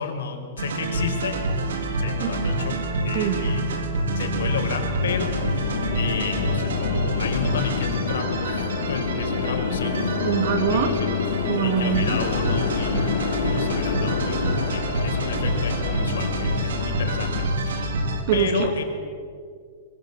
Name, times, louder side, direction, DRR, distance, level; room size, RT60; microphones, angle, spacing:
voice 1, 0.0-1.4 2.0-2.8 3.0-5.3 5.9-10.2 10.7-11.1 11.6-17.7 18.3-18.8, left 6 dB, 85° left, 4 dB, 5.2 m, -32 dB
sound 1, 0.6-18.2, right 1 dB, 90° right, 4.2 m, -27 dB
voice 2, 3.1-3.4 10.2-10.9 11.5-12.2 17.7-17.8 18.3-18.7, right 9 dB, 40° right, 7 dB, 2.8 m, -23 dB
sound 2, 5.0-17.5, left 7 dB, 65° left, 2.3 m, -29 dB
24.0 x 23.0 x 8.4 m, 2.2 s
supercardioid pair, 170°, 0 cm